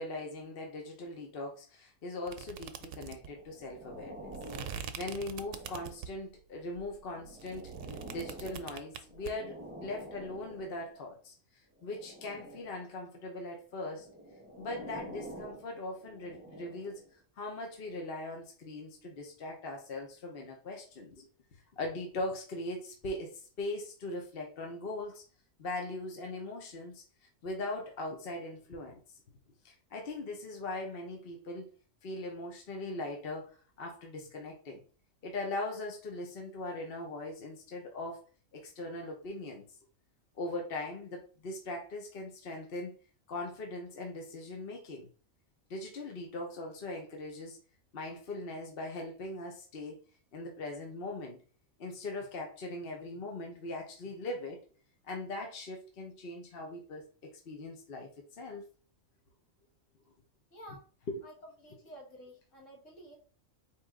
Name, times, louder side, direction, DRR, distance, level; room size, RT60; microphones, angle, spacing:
voice 1, 0.0-4.3 5.0-11.3 11.8-14.1 14.6-17.0 17.4-21.3 21.7-25.2 25.6-27.0 27.4-29.0 29.6-31.7 32.0-34.8 35.2-38.3 38.5-39.6 40.4-42.9 43.3-45.1 45.7-47.6 47.9-50.0 50.3-51.4 51.8-54.6 55.1-58.1 58.4-58.6 61.1-61.3, left 2 dB, 50° left, 1 dB, 1.0 m, -40 dB
sound 1, 2.3-6.3 6.7-9.3, right 8 dB, 75° right, 0.9 m, -43 dB
sound 2, 3.1-6.2 6.8-11.1 11.8-12.9 13.8-17.1 17.8-18.0, right 1 dB, 10° right, 0.8 m, -49 dB
voice 2, 60.5-60.9 61.2-63.2, equal, 65° left, -1 dB, 1.7 m, -51 dB
4.5 x 3.1 x 3.6 m, 0.38 s
omnidirectional pair, 1.4 m